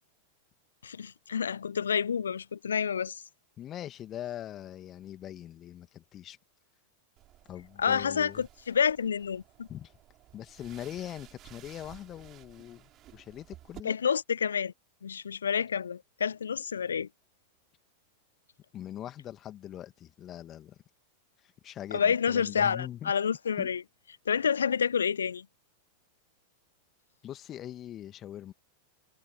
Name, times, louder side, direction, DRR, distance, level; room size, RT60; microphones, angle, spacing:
voice 1, 0.8-3.2 7.8-9.7 13.8-14.7 15.0-17.1 21.9-23.8 24.3-25.5, left 7 dB, 70° left, 0.3 m, -29 dB
voice 2, 3.6-6.4 7.5-8.5 9.7-9.9 10.3-14.0 18.7-20.8 21.6-23.1 23.6-23.7 27.2-28.5, left 11 dB, 30° left, 2.0 m, -42 dB
sound 1, 7.2-13.8, right 14 dB, 35° right, 3.5 m, -54 dB
figure-of-eight pair, 90°, 0 cm